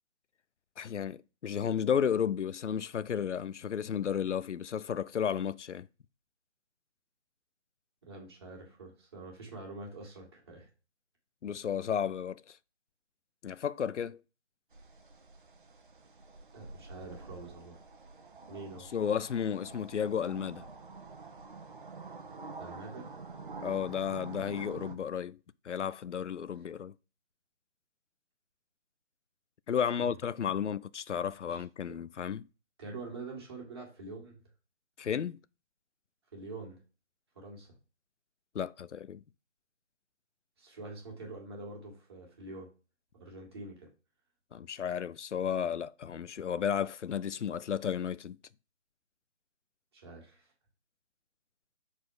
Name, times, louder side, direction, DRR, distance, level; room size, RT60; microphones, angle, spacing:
voice 1, 0.8-5.9 11.4-12.6 13.4-14.2 18.9-20.6 23.6-25.4 25.6-26.9 29.7-32.5 35.0-35.4 38.5-39.2 44.5-48.4, left 8 dB, 90° left, 0.6 m, -33 dB
voice 2, 8.0-10.7 16.5-17.8 18.5-18.9 22.6-23.1 30.0-30.2 31.4-31.6 32.8-34.4 36.3-36.8 37.3-37.7 40.6-42.7 43.2-43.9 49.9-50.5, right 3 dB, 20° right, 2.2 m, -45 dB
sound 1, 14.7-25.0, right 3 dB, 50° right, 1.0 m, -47 dB
7.1 x 4.3 x 4.7 m
figure-of-eight pair, 170°, 34 cm